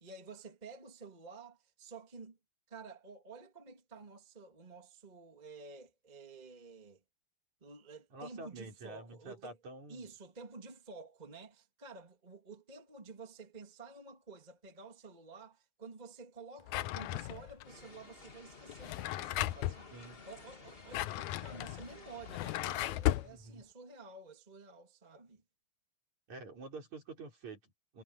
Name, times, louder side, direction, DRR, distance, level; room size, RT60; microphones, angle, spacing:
voice 1, 0.0-2.4 2.7-7.0 7.6-9.6 9.9-19.9 20.2-25.4, right 4 dB, 15° right, 2.3 m, -51 dB
voice 2, 8.1-10.1 19.9-20.2 23.2-23.6 26.3-28.0, right 2 dB, 60° right, 6.8 m, -48 dB
Drawer open or close, 16.7-17.6 18.7-19.8 20.7-23.3, left 15 dB, 80° left, 1.9 m, -35 dB
sound 1, 17.6-22.8, left 3 dB, 25° left, 1.6 m, -54 dB
omnidirectional pair, 3.7 m